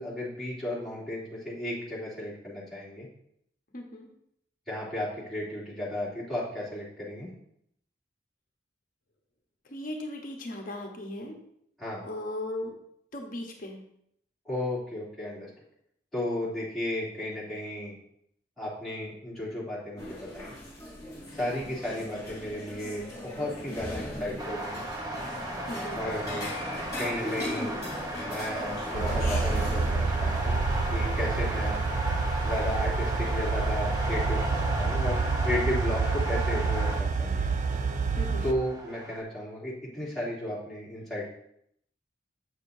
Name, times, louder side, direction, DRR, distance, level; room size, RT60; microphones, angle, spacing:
voice 1, 0.0-3.1 4.7-7.3 11.8-12.0 14.4-15.5 16.1-18.0 18.6-20.5 21.3-24.8 25.9-26.5 27.0-27.7 28.2-31.8 32.4-37.5 38.4-41.3, left 1 dB, ahead, -10 dB, 2.7 m, -34 dB
voice 2, 3.7-4.1 9.7-11.4 12.0-12.7 13.1-13.8 25.7-26.0 38.2-38.5, left 1 dB, 50° left, 1 dB, 1.0 m, -37 dB
sound 1, 20.0-29.9, left 1 dB, 20° left, 3.1 m, -38 dB
sound 2, 24.4-39.2, equal, 20° right, 0.8 m, -35 dB
sound 3, 28.9-38.5, right 4 dB, 40° right, 0.4 m, -28 dB
8.0 x 6.5 x 2.7 m, 0.73 s
head